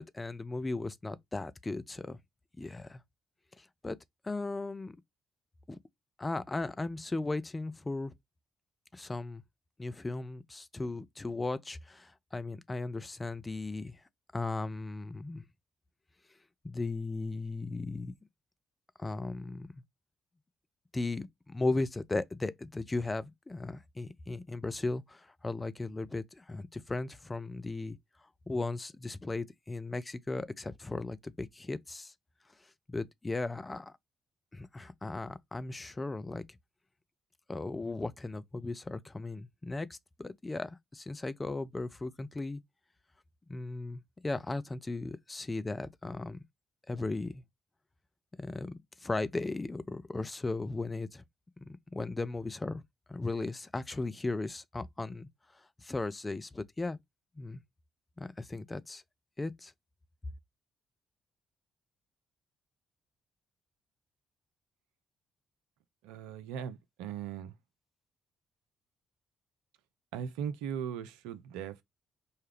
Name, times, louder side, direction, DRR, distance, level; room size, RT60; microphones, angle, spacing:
voice 1, 0.0-2.2 2.6-3.0 3.6-4.0 4.2-5.0 5.7-5.8 6.2-8.1 8.9-9.4 9.8-14.0 14.3-15.4 16.6-18.1 19.0-19.7 20.9-28.0 28.5-32.1 32.9-33.9 34.5-36.4 37.5-42.6 43.5-46.4 46.9-47.4 48.4-51.2 51.6-52.8 53.1-55.3 55.8-57.0 57.4-57.6 58.2-59.0 59.4-59.7, left 2 dB, 25° left, 0.6 m, -36 dB
voice 2, 66.0-67.5 70.1-71.8, right 8 dB, 75° right, 0.4 m, -38 dB
4.7 x 2.2 x 3.3 m
figure-of-eight pair, 40°, 0 cm